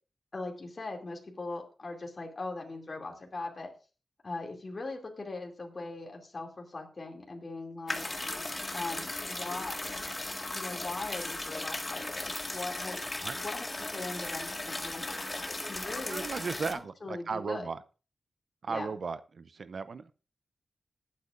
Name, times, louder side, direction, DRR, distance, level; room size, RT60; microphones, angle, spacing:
voice 1, 0.3-3.7 4.2-8.1 8.7-10.0 10.5-13.0 13.3-16.2 16.7-17.7 18.7-18.9, left 3 dB, 40° left, 1 dB, 2.5 m, -40 dB
sound 1, 7.9-16.7, left 2 dB, 25° left, 1.7 m, -37 dB
voice 2, 16.1-17.8 18.6-20.1, right 5 dB, 65° right, 13 dB, 0.6 m, -36 dB
20.0 x 8.5 x 2.5 m, 0.34 s
wide cardioid pair, 80°, 0 cm